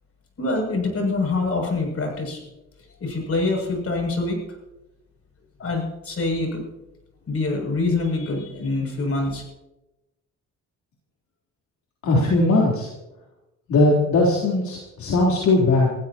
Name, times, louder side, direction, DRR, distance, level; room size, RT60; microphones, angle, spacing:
voice 1, 0.4-2.4 3.0-4.4 5.6-6.6 7.3-9.4, left 3 dB, 50° left, 1 dB, 7.4 m, -25 dB
voice 2, 12.0-12.9 13.7-15.9, left 2 dB, 70° left, -5 dB, 3.8 m, -19 dB
27.5 x 15.5 x 3.0 m, 0.98 s
cardioid pair, 90°, 30 cm